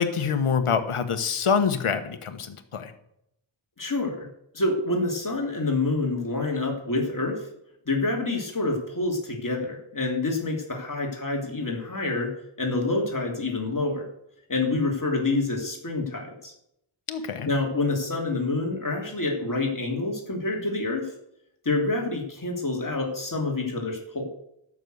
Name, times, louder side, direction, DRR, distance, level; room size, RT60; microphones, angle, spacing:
voice 1, 0.0-2.9 17.1-17.5, left 6 dB, 85° left, 9 dB, 1.3 m, -25 dB
voice 2, 3.8-4.3 4.5-7.4 7.9-12.3 12.6-14.0 14.5-16.5 17.4-21.0 21.6-24.3, left 2 dB, 40° left, 1 dB, 2.8 m, -27 dB
12.5 x 6.5 x 7.9 m, 0.78 s
wide cardioid pair, 75°, 49 cm